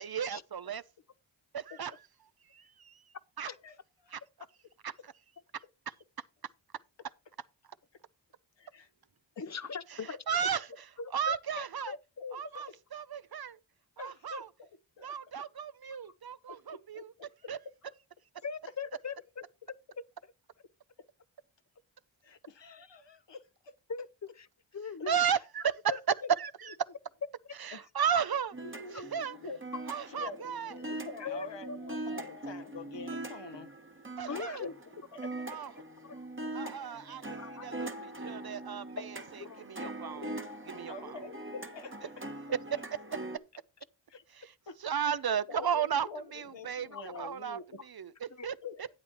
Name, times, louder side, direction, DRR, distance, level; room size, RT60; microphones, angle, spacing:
voice 1, 0.0-0.8 1.7-1.9 2.5-3.0 3.4-3.5 4.1-4.2 4.8-4.9 9.9-10.7 11.1-11.9 12.3-13.6 14.0-14.5 15.0-17.1 17.5-17.6 25.1-25.8 26.4-26.7 27.6-28.6 28.9-29.4 29.9-30.7 34.2-34.6 35.5-35.7 36.5-37.2 37.5-37.9 38.2-40.3 40.7-41.2 44.3-44.5 44.8-46.9 47.2-47.6 47.9-48.6, right 8 dB, 50° right, 0.6 m, -34 dB
voice 2, 3.5-4.2 8.6-8.9 9.4-9.5 12.2-12.8 14.0-14.7 15.0-15.2 16.5-17.5 17.9-18.0 21.0-21.1 22.2-23.8 26.2-26.3 27.7-27.9 28.6-29.6 30.1-33.7 34.3-35.6 36.6-36.7 37.8-38.1 40.9-42.2 44.1-44.2 44.7-44.8 45.5-47.8 48.6-48.9, left 4 dB, 65° left, 1.1 m, -46 dB
voice 3, 9.4-10.4 11.0-11.3 11.8-12.0 18.4-19.2 23.9-24.1 24.4-24.5 24.7-25.2 25.9-26.0 28.9-29.0 31.2-31.8 32.2-32.3 34.3-34.7 37.4-37.7 39.4-39.7 40.2-40.3 41.0-41.1 46.9-47.3 48.4-48.5, left 5 dB, 35° left, 0.6 m, -40 dB
sound 1, 28.5-43.4, right 2 dB, 25° right, 1.4 m, -42 dB
11.5 x 8.6 x 2.9 m
cardioid pair, 45°, 46 cm